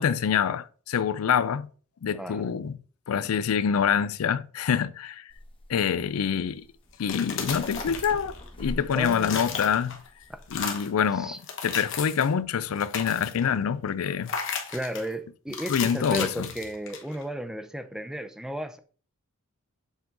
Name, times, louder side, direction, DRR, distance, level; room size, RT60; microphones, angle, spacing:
voice 1, 0.0-1.7 2.0-2.8 3.1-5.2 5.7-6.6 7.0-10.0 10.5-11.3 11.6-14.3 15.7-16.5, left 7 dB, 85° left, 0.4 m, -26 dB
voice 2, 2.1-2.5 8.9-9.4 10.3-10.4 11.1-11.4 14.7-18.8, right 1 dB, 5° right, 0.5 m, -34 dB
sound 1, 5.3-10.7, left 1 dB, 25° left, 0.9 m, -41 dB
sound 2, 6.9-8.5 8.8-10.1 10.4-11.0 11.4-12.3 12.7-13.5 14.3-15.1 15.5-17.2, left 6 dB, 60° left, 1.2 m, -34 dB
7.1 x 3.7 x 3.8 m
head